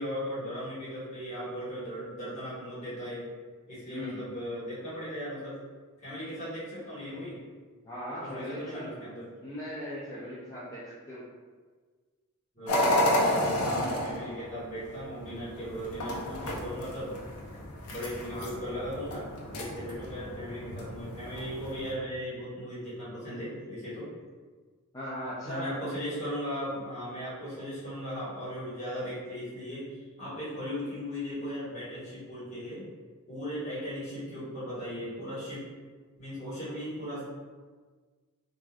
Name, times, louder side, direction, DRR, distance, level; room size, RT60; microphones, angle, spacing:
voice 1, 0.0-3.3 3.7-5.6 6.0-7.4 8.2-9.3 12.5-17.1 17.8-24.1 25.4-32.9 33.3-35.7 36.2-37.2, equal, 30° left, -10 dB, 1.4 m, -37 dB
voice 2, 3.9-4.2 7.8-8.9 9.4-11.2 18.3-18.5 24.9-25.8, equal, 15° left, -9 dB, 0.4 m, -38 dB
sound 1, 12.7-21.9, left 1 dB, 80° left, 0.6 m, -32 dB
3.5 x 2.6 x 2.3 m, 1.5 s
head